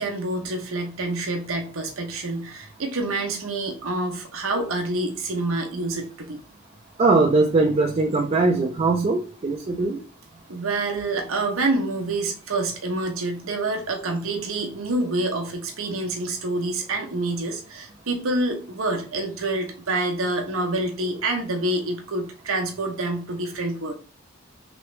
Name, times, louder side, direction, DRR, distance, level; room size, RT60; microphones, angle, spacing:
voice 1, 0.0-6.4 10.5-23.9, right 2 dB, 80° right, 3 dB, 0.8 m, -27 dB
voice 2, 7.0-10.0, right 3 dB, 30° right, 0 dB, 0.4 m, -20 dB
3.4 x 3.1 x 3.1 m, 0.39 s
head